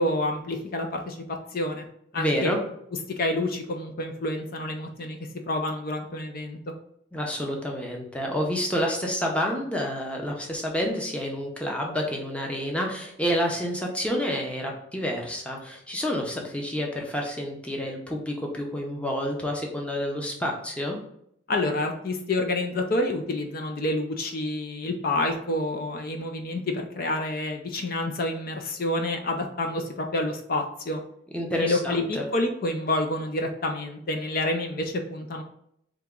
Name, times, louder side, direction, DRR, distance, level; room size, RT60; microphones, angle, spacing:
voice 1, 0.0-1.8 2.1-2.5 3.2-5.2 5.5-6.6 21.5-31.0 31.6-35.4, left 1 dB, 50° left, 4 dB, 0.4 m, -28 dB
voice 2, 2.1-2.6 7.1-21.0 31.3-32.2, equal, 5° left, 0 dB, 0.6 m, -29 dB
3.5 x 2.9 x 3.6 m, 0.72 s
head